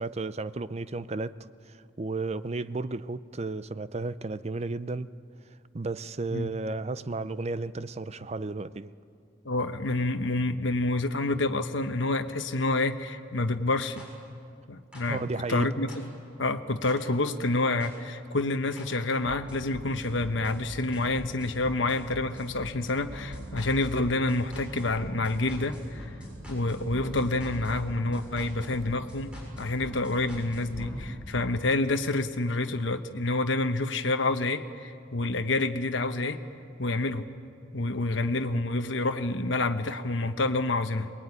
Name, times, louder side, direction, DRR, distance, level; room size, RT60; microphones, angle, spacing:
voice 1, 0.0-1.3 1.7-5.1 5.7-8.9 15.1-15.7, right 3 dB, 35° right, 0.5 m, -33 dB
voice 2, 9.4-14.0 14.7-16.1 16.4-26.1 26.5-29.3 29.6-36.4 36.8-37.3 37.7-41.1, left 2 dB, 75° left, 1.1 m, -28 dB
sound 1, 14.0-14.1 14.9-15.0 15.9-16.0 16.8-16.9 17.8-17.9 18.8-18.9 19.2-31.0, equal, 5° right, 6.9 m, -41 dB
23.5 x 20.5 x 9.7 m
head